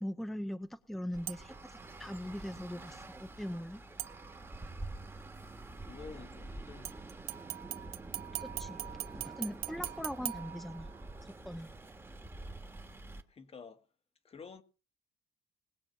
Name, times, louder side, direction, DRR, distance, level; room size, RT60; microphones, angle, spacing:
voice 1, 0.0-3.8 8.4-10.9 11.2-11.7, equal, ahead, 0.7 m, -41 dB
Traffic noise roadway noise, 1.1-13.2, right 2 dB, 15° right, 1.6 m, -47 dB
sound 1, 1.3-1.7 4.0-4.7 6.8-11.2 11.7-11.8, right 14 dB, 70° right, 0.8 m, -42 dB
voice 2, 5.8-7.1 13.3-13.9 14.2-14.6, left 5 dB, 35° left, 1.5 m, -50 dB
20.0 x 7.4 x 5.8 m
cardioid pair, 110°, 17 cm